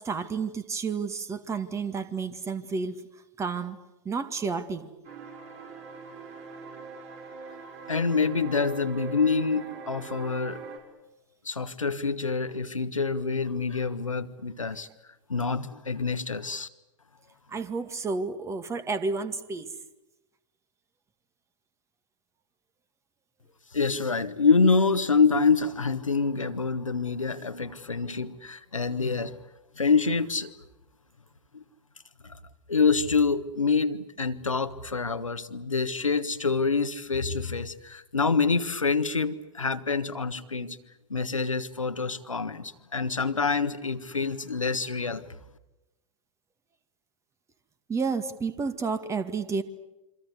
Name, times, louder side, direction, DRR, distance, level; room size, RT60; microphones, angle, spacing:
voice 1, 0.0-3.0 3.4-3.8 4.1-4.9 17.5-19.7 47.9-49.6, right 4 dB, 15° right, 12 dB, 2.0 m, -31 dB
sound 1, 5.0-10.8, right 4 dB, 40° right, 6.6 m, -42 dB
voice 2, 7.9-10.6 11.4-14.9 15.3-16.7 23.7-29.4 29.8-30.5 31.5-31.6 32.2-32.3 32.7-40.8 41.1-45.2, left 4 dB, 80° left, 10 dB, 1.5 m, -26 dB
27.5 x 25.0 x 8.2 m, 1.0 s
figure-of-eight pair, 95°, 16 cm